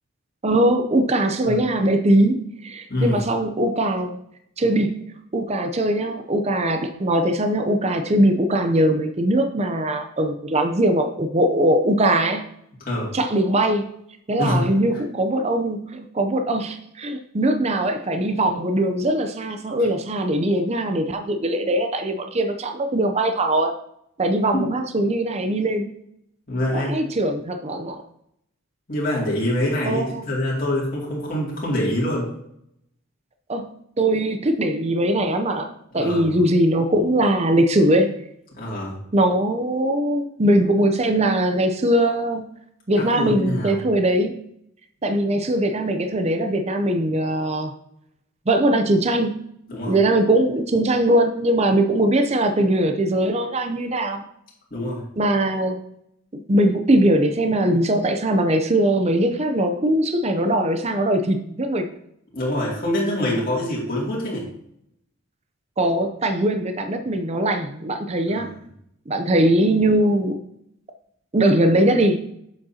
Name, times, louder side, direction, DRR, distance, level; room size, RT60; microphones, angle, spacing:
voice 1, 0.4-4.2 4.6-5.0 5.3-12.4 13.1-13.9 14.3-23.7 24.2-25.9 26.7-28.0 29.9-30.3 33.5-33.7 34.0-35.7 35.9-38.2 39.1-42.4 42.9-44.4 45.0-47.7 48.5-49.4 49.9-54.2 55.2-55.8 56.3-61.9 65.8-68.5 69.1-70.4 71.3-72.2, right 1 dB, 30° right, 6 dB, 0.6 m, -21 dB
voice 2, 26.5-27.0 28.9-32.3 35.9-36.3 38.6-38.9 43.0-43.8 49.7-50.0 54.7-55.0 62.3-64.5 68.3-68.5, left 1 dB, 45° left, -5 dB, 2.4 m, -25 dB
7.7 x 7.1 x 2.8 m, 0.74 s
head